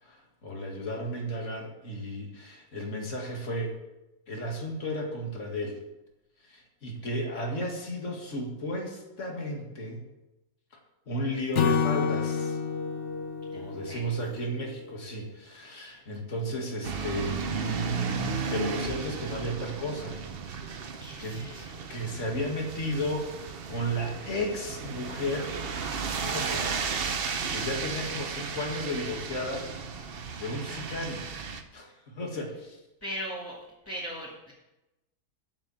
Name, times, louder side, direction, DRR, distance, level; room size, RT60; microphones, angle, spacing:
voice 1, 0.0-3.8 4.3-5.8 6.4-10.0 11.1-12.6 13.5-20.2 21.2-21.5 21.9-25.6 26.2-26.7 27.2-29.7 30.4-31.3 31.7-32.8, equal, 40° left, 1 dB, 2.2 m, -34 dB
Acoustic guitar / Strum, 11.5-14.9, left 6 dB, 60° left, 0.7 m, -29 dB
voice 2, 13.5-14.1 15.8-16.0 21.0-21.9 33.0-33.6 33.9-34.5, equal, 5° left, -7 dB, 2.2 m, -39 dB
sound 1, 16.8-31.6, right 5 dB, 90° right, 0.5 m, -34 dB
8.8 x 7.5 x 7.2 m, 0.96 s
omnidirectional pair, 2.2 m